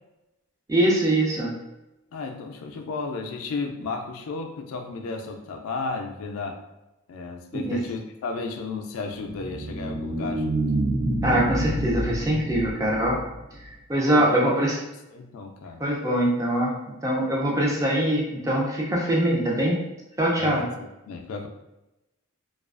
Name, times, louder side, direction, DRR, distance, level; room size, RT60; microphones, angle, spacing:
voice 1, 0.7-1.5 7.6-7.8 11.2-13.2 13.9-14.7 15.8-16.7 17.0-19.8 20.2-20.6, right 1 dB, 15° right, -3 dB, 0.4 m, -23 dB
voice 2, 2.1-6.6 7.1-10.6 14.0-14.6 15.1-15.8 20.4-21.5, left 4 dB, 80° left, 4 dB, 0.3 m, -33 dB
sound 1, 9.2-13.7, right 1 dB, 70° right, 0.6 m, -28 dB
2.3 x 2.2 x 2.3 m, 0.96 s
head